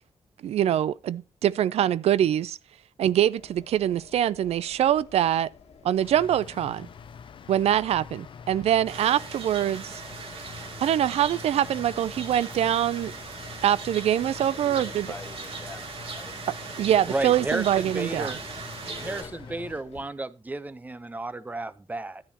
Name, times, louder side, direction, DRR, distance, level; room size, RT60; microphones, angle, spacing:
voice 1, 0.4-2.6 3.0-5.5 5.8-6.9 7.5-10.0 10.8-13.1 13.6-15.1 16.8-18.3, right 11 dB, 90° right, 0.4 m, -24 dB
sound 1, 3.4-20.0, left 6 dB, 85° left, 1.5 m, -53 dB
sound 2, 6.0-19.8, left 6 dB, 55° left, 0.6 m, -45 dB
sound 3, 8.9-19.2, right 4 dB, 70° right, 2.5 m, -39 dB
voice 2, 14.5-16.4 18.8-19.6, left 2 dB, 20° left, 0.8 m, -45 dB
voice 3, 17.1-18.4 19.0-22.2, right 2 dB, 15° right, 0.6 m, -32 dB
12.0 x 10.0 x 2.8 m
wide cardioid pair, 135°, 10 cm